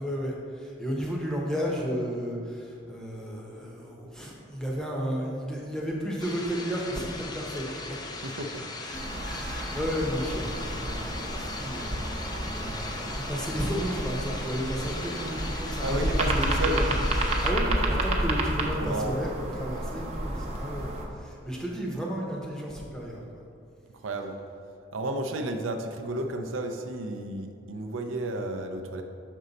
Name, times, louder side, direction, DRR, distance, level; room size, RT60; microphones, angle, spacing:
voice 1, 0.0-8.0 8.8-17.0 17.3-19.3 19.6-23.4, equal, 5° left, -2 dB, 0.8 m, -33 dB
sound 1, 6.2-17.5, left 3 dB, 20° left, 0.4 m, -38 dB
voice 2, 8.2-8.8 15.8-16.9 18.8-19.2 24.0-24.4 24.9-29.0, right 1 dB, 85° right, 5 dB, 0.5 m, -32 dB
sound 2, 8.9-21.1, right 1 dB, 30° right, 0.7 m, -30 dB
6.5 x 5.3 x 4.0 m, 2.5 s
head